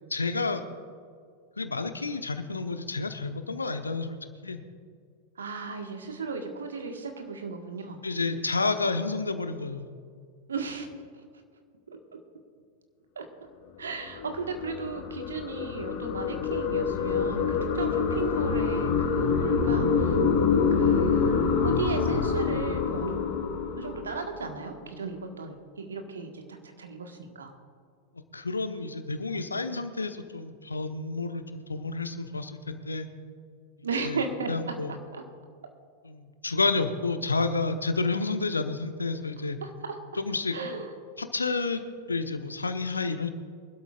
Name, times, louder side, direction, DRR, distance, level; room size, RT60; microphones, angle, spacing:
voice 1, 0.1-0.6 1.6-4.6 8.0-9.9 28.3-33.1 34.0-34.2 34.5-35.0 36.0-39.6 40.2-40.6 41.2-41.8 42.1-43.3, left 3 dB, 80° left, 8 dB, 1.0 m, -30 dB
voice 2, 5.4-8.0 10.5-10.9 13.1-13.2 13.8-20.2 20.7-23.2 23.8-26.4 26.8-27.5 33.8-34.7 35.1-35.2 39.6-40.0 40.5-40.9, right 4 dB, 70° right, 4 dB, 1.6 m, -35 dB
sound 1, 13.9-24.5, left 5 dB, 50° left, 3.1 m, -26 dB
24.0 x 12.5 x 2.5 m, 2.1 s
figure-of-eight pair, 90°, 0 cm